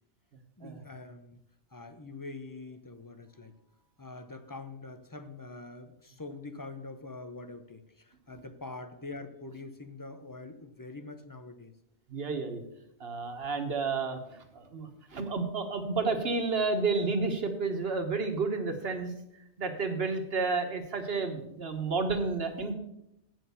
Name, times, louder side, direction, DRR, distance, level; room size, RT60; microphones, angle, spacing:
voice 1, 0.6-1.4 1.7-3.6 4.0-11.7, left 3 dB, 25° left, 9 dB, 0.5 m, -44 dB
voice 2, 12.1-12.6 13.0-19.1 19.6-22.7, right 4 dB, 60° right, 6 dB, 1.4 m, -31 dB
8.7 x 6.5 x 6.9 m, 0.82 s
omnidirectional pair, 1.2 m